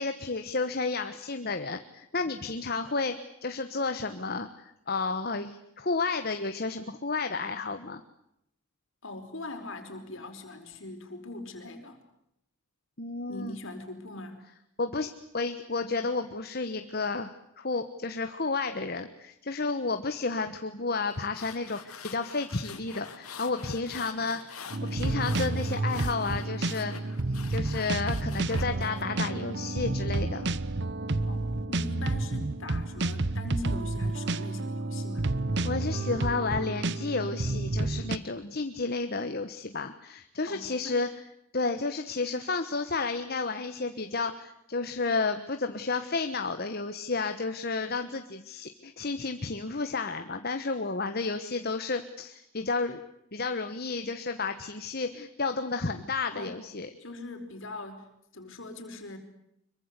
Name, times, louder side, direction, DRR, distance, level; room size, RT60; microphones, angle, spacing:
voice 1, 0.0-3.1 3.4-8.0 13.0-13.6 14.8-26.9 27.5-30.5 35.6-41.1 41.5-53.0 53.3-56.9, left 3 dB, 45° left, 8 dB, 1.2 m, -32 dB
voice 2, 9.0-12.0 13.3-14.4 31.2-35.3 40.4-41.0 56.3-56.6 57.0-58.1 58.3-59.2, left 2 dB, 60° left, 6 dB, 4.9 m, -41 dB
sound 1, 21.1-29.0, left 6 dB, 80° left, 3.1 m, -45 dB
sound 2, 24.7-38.2, right 2 dB, 50° right, 0.9 m, -30 dB
25.5 x 23.5 x 8.2 m, 0.79 s
head